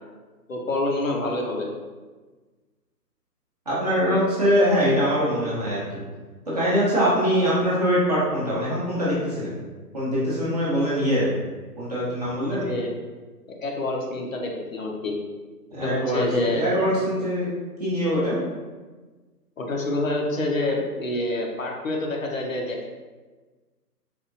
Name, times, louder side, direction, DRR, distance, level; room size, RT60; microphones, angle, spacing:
voice 1, 0.5-1.7 12.5-12.9 13.6-15.2 15.8-16.6 19.6-22.9, left 2 dB, 55° left, 0 dB, 0.6 m, -27 dB
voice 2, 3.7-6.0 6.5-9.5 9.9-11.3 11.8-12.7 15.7-16.2 16.5-17.5 17.8-18.4, equal, 25° right, -8 dB, 0.7 m, -23 dB
4.1 x 2.4 x 2.7 m, 1.3 s
figure-of-eight pair, 135°, 49 cm